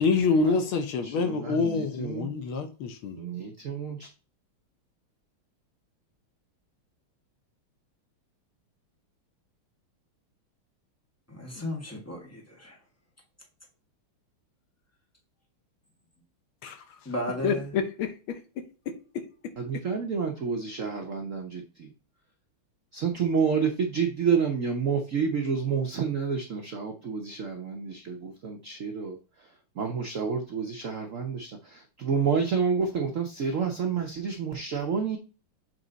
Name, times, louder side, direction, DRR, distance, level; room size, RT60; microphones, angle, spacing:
voice 1, 0.0-3.2 17.4-18.4 18.9-19.0, left 4 dB, 75° left, 1.7 m, -26 dB
voice 2, 1.0-2.3 3.2-4.1 19.6-21.9 22.9-29.2 29.8-35.2, right 6 dB, 65° right, 0.7 m, -29 dB
voice 3, 11.3-12.8 17.0-17.7, equal, 10° left, 1.3 m, -34 dB
7.6 x 3.2 x 4.0 m
omnidirectional pair, 2.4 m